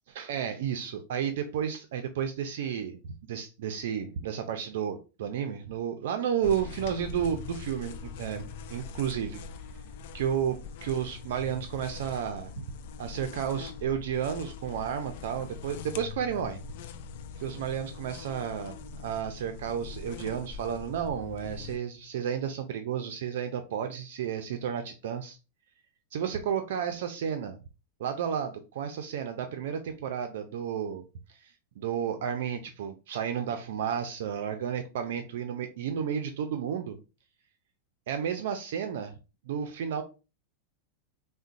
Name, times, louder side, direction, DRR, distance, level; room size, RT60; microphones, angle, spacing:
voice 1, 0.1-8.4 8.7-9.4 10.1-12.6 13.0-16.6 17.4-25.4 26.1-27.6 28.0-37.0 38.1-39.1 39.5-40.0, right 8 dB, 75° right, 0.4 m, -32 dB
sound 1, 6.4-21.8, left 5 dB, 65° left, 0.3 m, -42 dB
3.7 x 2.1 x 2.5 m
supercardioid pair, 125°, 0 cm